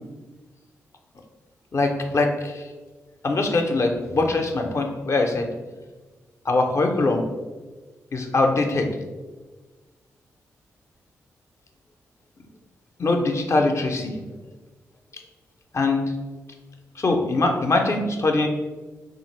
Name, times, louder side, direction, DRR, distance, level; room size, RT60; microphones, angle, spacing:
voice 1, 1.7-2.6 3.2-5.5 6.5-7.2 8.1-8.9 13.0-14.1 15.7-16.1 17.0-18.5, left 2 dB, 45° left, 3 dB, 0.5 m, -22 dB
2.8 x 2.4 x 3.1 m, 1.3 s
supercardioid pair, 40°, 6 cm